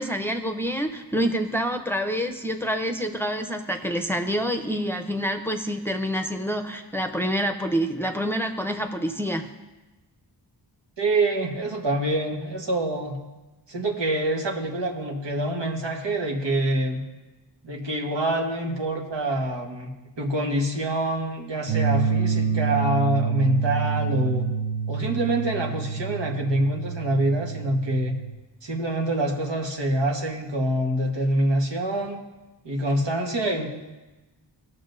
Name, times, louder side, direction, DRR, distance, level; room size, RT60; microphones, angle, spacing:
voice 1, 0.0-9.5, equal, 5° left, 5 dB, 0.6 m, -27 dB
voice 2, 11.0-13.1 13.7-17.0 17.6-19.9 20.2-24.5 24.9-28.1 28.6-32.2 32.6-33.7, right 1 dB, 85° right, 0 dB, 1.5 m, -25 dB
sound 1, 21.7-28.3, right 5 dB, 45° right, 1.2 m, -27 dB
18.5 x 6.3 x 2.6 m, 1.1 s
wide cardioid pair, 70°, 42 cm